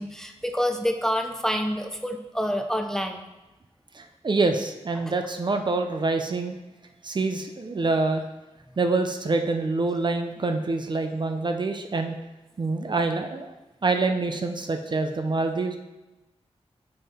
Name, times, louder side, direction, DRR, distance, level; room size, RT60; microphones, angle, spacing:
voice 1, 0.0-3.2 5.0-5.1, equal, 5° left, 4 dB, 0.5 m, -27 dB
voice 2, 3.9-6.6 7.0-8.2 8.8-12.2 12.6-13.5 13.8-15.8, right 3 dB, 45° right, 5 dB, 0.6 m, -26 dB
5.4 x 5.4 x 4.3 m, 1.1 s
wide cardioid pair, 85°, 11 cm